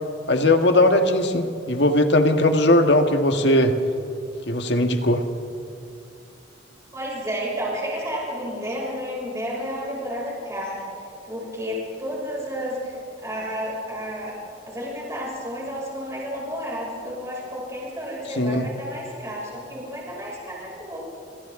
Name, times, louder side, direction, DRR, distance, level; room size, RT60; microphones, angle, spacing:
voice 1, 0.3-3.7 4.5-5.2 18.4-18.6, left 1 dB, 60° left, 6 dB, 1.6 m, -19 dB
voice 2, 6.9-14.4 14.7-21.0, equal, 15° right, -5 dB, 6.1 m, -31 dB
28.0 x 26.0 x 3.8 m, 2.5 s
head